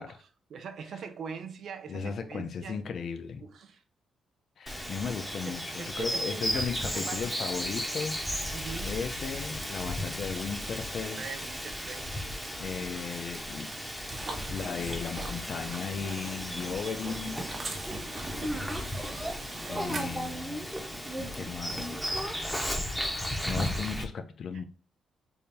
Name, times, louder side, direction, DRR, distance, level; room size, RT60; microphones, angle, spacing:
voice 1, 0.0-2.8 3.4-3.8 4.9-5.0 5.4-7.2 8.5-8.9 11.1-12.1, right 6 dB, 65° right, 0.6 m, -42 dB
voice 2, 1.9-3.4 4.6-8.3 8.8-11.2 12.6-13.7 14.5-17.4 19.7-20.7 21.2-21.8 23.4-24.6, left 6 dB, 60° left, 0.6 m, -36 dB
Bird vocalization bird call bird song, 4.7-24.0, equal, ahead, 1.0 m, -35 dB
sound 1, 14.1-20.3, right 3 dB, 40° right, 1.1 m, -41 dB
3.5 x 2.3 x 4.2 m
cardioid pair, 90°, 0 cm